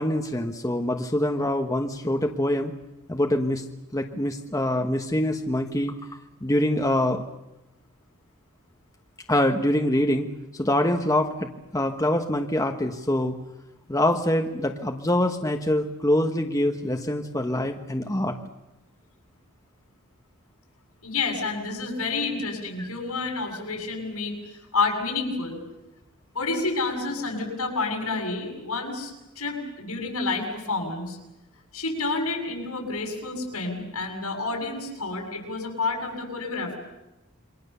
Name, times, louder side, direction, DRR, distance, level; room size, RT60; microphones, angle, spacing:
voice 1, 0.0-2.7 3.1-3.6 3.9-5.9 6.4-7.2 9.3-10.3 10.5-13.3 13.9-18.4, left 1 dB, 15° left, 3 dB, 1.2 m, -24 dB
voice 2, 21.0-25.6 26.3-31.2 31.7-36.7, left 3 dB, 75° left, 2 dB, 7.3 m, -29 dB
28.5 x 23.5 x 6.9 m, 0.97 s
head